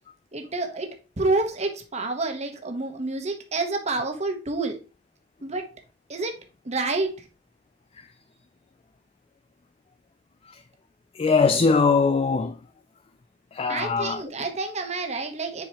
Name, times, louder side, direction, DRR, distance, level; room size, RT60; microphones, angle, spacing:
voice 1, 0.3-0.9 1.2-4.8 5.4-5.7 6.1-6.3 6.6-7.2 13.7-15.6, right 3 dB, 35° right, 1.1 m, -28 dB
voice 2, 11.2-12.6 13.5-14.2, left 4 dB, 30° left, 0.3 m, -21 dB
7.2 x 4.8 x 2.9 m
head